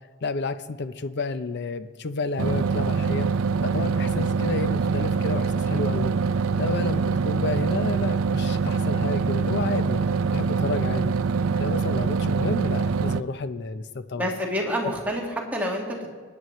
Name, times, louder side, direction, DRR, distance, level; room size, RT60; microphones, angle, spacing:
voice 1, 0.2-3.3 3.6-6.1 6.6-10.0 10.3-11.1 11.6-14.3, left 3 dB, 55° left, 11 dB, 0.6 m, -31 dB
sound 1, 2.4-13.2, right 5 dB, 70° right, 0.4 m, -24 dB
voice 2, 14.1-16.1, equal, 10° right, -2 dB, 1.8 m, -28 dB
28.0 x 9.4 x 3.1 m, 1.5 s
head